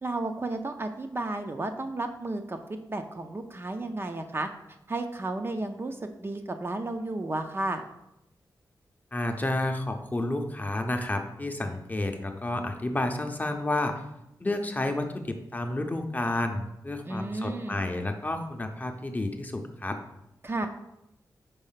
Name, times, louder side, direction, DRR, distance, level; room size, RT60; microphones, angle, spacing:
voice 1, 0.0-4.5 4.9-7.8 17.1-17.8 20.4-20.7, right 2 dB, 30° right, 5 dB, 0.5 m, -33 dB
voice 2, 9.1-13.9 14.4-20.0, left 1 dB, 20° left, 5 dB, 0.7 m, -30 dB
5.4 x 4.0 x 5.7 m, 0.86 s
wide cardioid pair, 115°, 8 cm